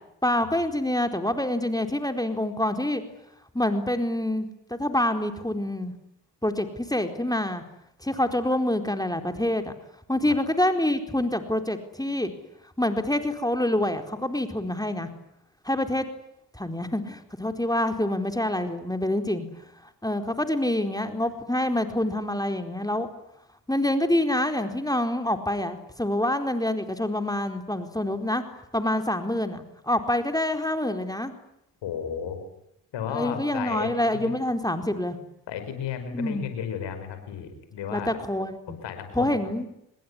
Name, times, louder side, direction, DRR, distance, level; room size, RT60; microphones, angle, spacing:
voice 1, 0.2-3.0 3.5-5.9 6.4-7.6 8.0-9.7 10.1-12.3 12.8-15.1 15.6-16.1 16.6-19.5 20.0-23.1 23.7-28.4 28.7-31.3 33.1-35.2 36.1-36.4 37.9-38.8 39.1-39.7, left 1 dB, 10° left, 6 dB, 4.3 m, -26 dB
voice 2, 31.8-32.4 32.9-33.9 34.2-34.3 35.5-38.1 38.7-39.4, left 8 dB, 80° left, 8 dB, 5.8 m, -33 dB
26.5 x 21.5 x 9.9 m, 0.80 s
hypercardioid pair, 45°, 43 cm